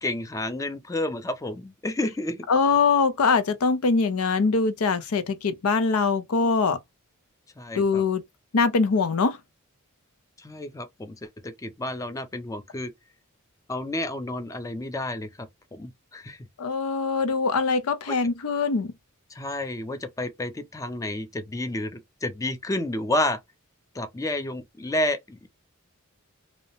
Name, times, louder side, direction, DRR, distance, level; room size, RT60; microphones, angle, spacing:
voice 1, 0.0-2.5 7.6-8.0 10.4-12.9 13.7-16.5 18.1-18.2 19.3-23.4 23.9-25.5, left 1 dB, 15° left, 0.4 m, -30 dB
voice 2, 2.5-6.8 7.7-8.2 8.5-9.4 16.6-18.9, left 4 dB, 80° left, 0.5 m, -23 dB
2.7 x 2.1 x 2.7 m
head